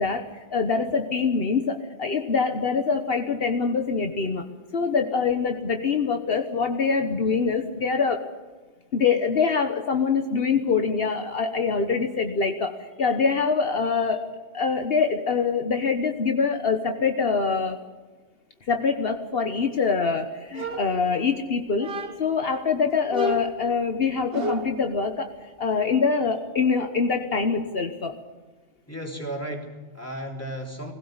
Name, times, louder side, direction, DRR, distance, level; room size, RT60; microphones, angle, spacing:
voice 1, 0.0-4.5 4.7-8.3 8.9-14.3 14.5-17.8 18.7-21.9 22.2-28.2, left 5 dB, 65° left, 5 dB, 1.4 m, -24 dB
sound 1, 20.5-21.4 21.8-22.4 23.1-24.9, equal, 60° right, 1.8 m, -32 dB
voice 2, 28.9-30.9, right 1 dB, 15° left, 0 dB, 3.5 m, -34 dB
20.0 x 17.0 x 7.9 m, 1.3 s
omnidirectional pair, 1.1 m